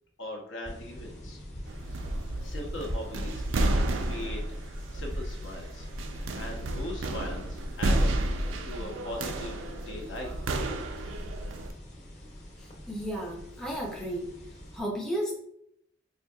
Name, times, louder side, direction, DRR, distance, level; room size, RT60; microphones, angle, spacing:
voice 1, 0.2-1.4 2.4-3.7 4.1-4.4 4.7-5.9 6.1-8.1 8.4-10.3, left 1 dB, 75° left, 0 dB, 0.8 m, -40 dB
sound 1, 0.6-14.8, equal, 35° left, 0.8 m, -44 dB
sound 2, 1.7-11.7, right 1 dB, 80° right, 0.4 m, -31 dB
voice 2, 12.9-14.3 14.7-15.4, equal, 5° left, -2 dB, 0.5 m, -33 dB
4.3 x 2.7 x 2.3 m, 0.72 s
head